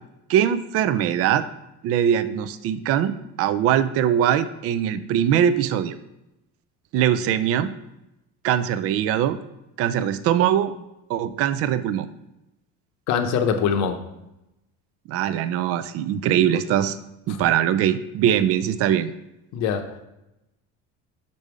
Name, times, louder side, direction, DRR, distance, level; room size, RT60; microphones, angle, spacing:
voice 1, 0.3-1.4 1.8-6.0 6.9-7.7 8.4-9.4 9.8-10.7 11.1-12.1 15.1-17.0 17.3-19.1, right 10 dB, 45° right, 13 dB, 0.4 m, -22 dB
voice 2, 13.1-14.0 17.3-17.5 19.5-19.9, left 7 dB, 60° left, 7 dB, 0.8 m, -23 dB
5.4 x 5.3 x 4.8 m, 0.91 s
cardioid pair, 165°, 33 cm